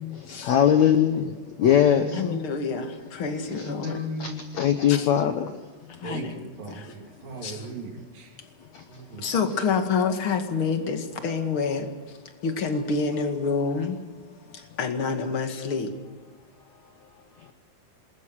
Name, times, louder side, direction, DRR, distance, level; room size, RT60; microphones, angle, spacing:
voice 1, 0.1-2.2 3.6-3.7 4.2-5.5 8.7-8.8, left 9 dB, 70° left, 8 dB, 1.7 m, -21 dB
voice 2, 1.6-2.4 3.3-4.4 6.0-8.4 8.9-9.3, equal, 60° right, 2 dB, 4.7 m, -36 dB
voice 3, 2.1-4.0 4.9-5.1 5.9-6.4 6.7-7.0 7.4-7.7 8.4-8.5 9.2-14.0 14.2-16.0 17.0-17.1 17.4-17.5, left 5 dB, 40° left, 6 dB, 2.4 m, -28 dB
27.0 x 21.0 x 6.4 m, 1.3 s
omnidirectional pair, 4.5 m